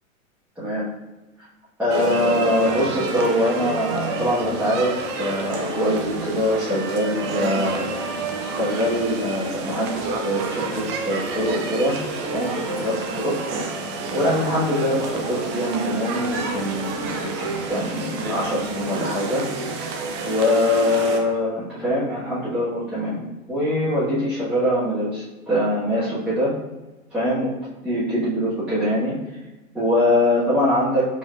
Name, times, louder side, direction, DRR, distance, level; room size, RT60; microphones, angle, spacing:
voice 1, 0.5-0.9 1.8-7.9 8.5-12.0 12.3-13.3 14.1-19.5 20.2-26.5 27.1-27.5 27.8-29.2 29.7-31.2, left 1 dB, 5° right, -14 dB, 1.5 m, -23 dB
sound 1, 1.9-21.2, right 3 dB, 25° right, 0.3 m, -29 dB
4.2 x 4.2 x 2.5 m, 1.1 s
hypercardioid pair, 110°, 41 cm